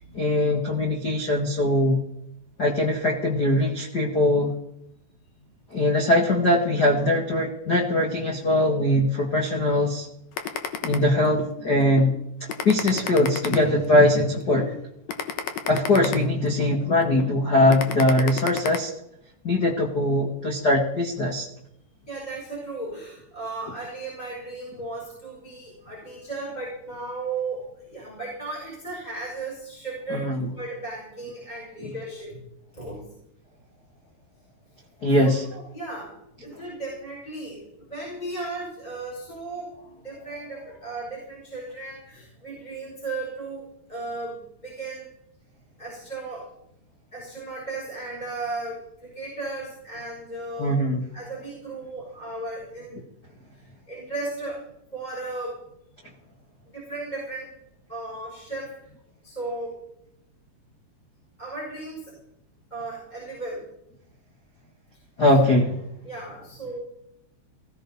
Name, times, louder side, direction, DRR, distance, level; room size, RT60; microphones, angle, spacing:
voice 1, 0.1-2.0 2.6-4.5 5.7-10.1 10.8-12.1 12.6-14.8 15.7-18.9 19.4-21.5 30.1-30.5 35.0-35.5 50.6-51.0 65.2-65.7, left 1 dB, 50° left, 0 dB, 1.1 m, -21 dB
sound 1, 10.4-11.5 12.0-12.1 12.5-14.1 14.6-14.7 15.1-16.7 17.2-17.3 17.7-18.8, left 8 dB, 75° left, 1.5 m, -31 dB
voice 2, 22.1-32.4 32.7-33.1 35.1-35.2 35.5-36.1 36.4-45.1 45.8-46.5 47.1-50.8 51.1-53.0 53.6-54.6 54.9-55.6 56.7-57.5 57.9-58.9 59.2-59.8 61.4-62.1 62.7-63.7 66.0-66.8, right 2 dB, 10° left, -2 dB, 5.9 m, -35 dB
20.0 x 16.0 x 4.2 m, 0.78 s
omnidirectional pair, 5.0 m